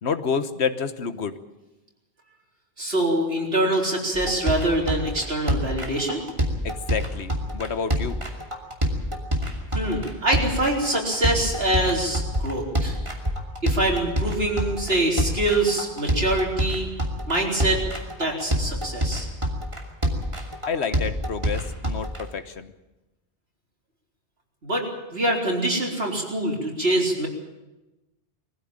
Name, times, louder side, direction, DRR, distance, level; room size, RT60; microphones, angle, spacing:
voice 1, 0.0-1.4 6.6-8.2 20.7-22.7, left 6 dB, 85° left, 11 dB, 1.4 m, -29 dB
voice 2, 2.8-6.2 9.7-13.0 13.6-16.9 17.3-17.8 18.2-19.3 24.6-27.3, right 1 dB, 70° right, -1 dB, 4.3 m, -24 dB
sound 1, 4.1-22.2, equal, 30° right, 2.7 m, -27 dB
21.5 x 15.0 x 8.8 m, 1.0 s
omnidirectional pair, 1.1 m